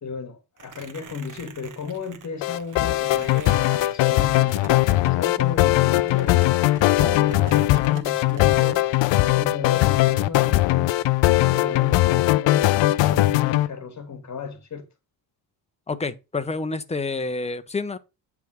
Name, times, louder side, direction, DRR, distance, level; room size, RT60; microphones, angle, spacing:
voice 1, 0.0-6.4 7.2-14.9, left 5 dB, 35° left, 1.5 m, -34 dB
sound 1, 0.6-8.8, right 6 dB, 40° right, 1.2 m, -43 dB
sound 2, 2.4-13.7, left 17 dB, 70° left, 0.6 m, -20 dB
voice 2, 15.9-18.0, left 3 dB, 15° left, 0.8 m, -28 dB
9.2 x 3.6 x 6.1 m
cardioid pair, 105°, 46 cm